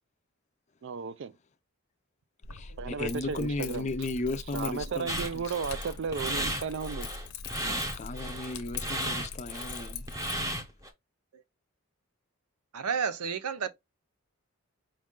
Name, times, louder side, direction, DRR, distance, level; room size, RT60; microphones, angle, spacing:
voice 1, 0.8-1.4 2.8-3.9 4.5-7.1, right 5 dB, 55° right, 0.3 m, -34 dB
Keys jangling, 2.4-10.4, left 4 dB, 80° left, 0.7 m, -42 dB
voice 2, 2.5-5.4 7.9-10.1, left 2 dB, 30° left, 0.4 m, -35 dB
sound 1, 5.1-10.9, right 1 dB, 15° right, 0.7 m, -34 dB
voice 3, 12.7-13.7, right 6 dB, 90° right, 0.7 m, -31 dB
5.2 x 2.3 x 3.6 m
head